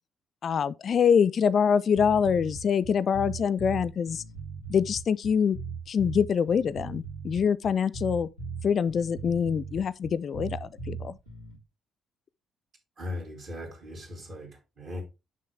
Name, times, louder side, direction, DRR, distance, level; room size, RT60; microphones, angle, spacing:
voice 1, 0.4-4.2 4.7-5.6 5.9-8.3 8.6-11.2, left 7 dB, 50° left, 0.3 m, -25 dB
sound 1, 1.9-11.6, right 5 dB, 90° right, 2.5 m, -38 dB
voice 2, 13.0-15.0, left 1 dB, 55° right, 2.5 m, -38 dB
6.2 x 5.7 x 3.4 m
figure-of-eight pair, 45°, 0 cm